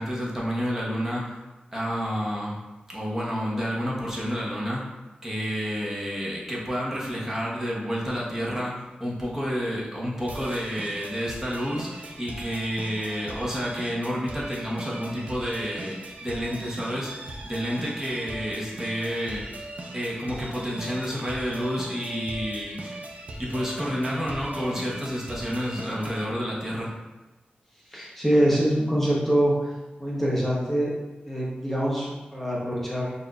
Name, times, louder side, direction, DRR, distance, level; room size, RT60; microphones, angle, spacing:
voice 1, 0.0-1.4 1.7-2.6 2.9-4.9 5.2-17.1 17.4-19.6 19.9-23.0 23.4-26.9, equal, 15° right, -5 dB, 1.1 m, -30 dB
sound 1, 10.3-26.2, right 2 dB, 60° right, 0.6 m, -39 dB
voice 2, 27.9-29.6 30.0-33.1, equal, 10° left, -6 dB, 0.9 m, -24 dB
5.9 x 2.6 x 2.4 m, 1.1 s
wide cardioid pair, 80°, 3 cm